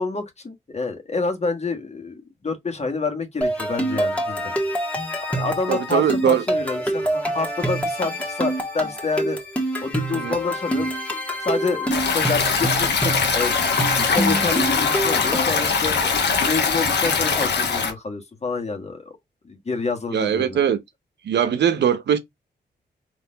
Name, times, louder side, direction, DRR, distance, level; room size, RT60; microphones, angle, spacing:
voice 1, 0.0-4.5 5.3-9.4 9.8-10.9 11.4-13.7 14.0-19.2 19.5-20.6, left 3 dB, 40° left, 1.6 m, -28 dB
sound 1, 3.4-15.7, right 1 dB, 5° left, 1.6 m, -26 dB
voice 2, 5.7-6.4 10.1-10.4 20.1-20.8 21.2-22.2, right 8 dB, 75° right, 0.7 m, -21 dB
Stream, 11.9-17.9, left 5 dB, 75° left, 1.3 m, -22 dB
4.2 x 3.0 x 3.9 m
cardioid pair, 70°, 18 cm